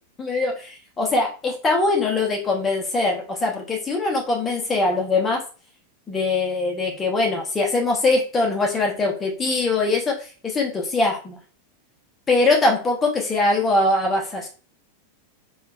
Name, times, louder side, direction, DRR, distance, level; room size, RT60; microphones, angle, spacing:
voice 1, 0.2-5.4 6.1-11.4 12.3-14.5, left 3 dB, 15° left, 0 dB, 0.9 m, -22 dB
3.7 x 2.4 x 2.4 m, 0.37 s
figure-of-eight pair, 90°, 0 cm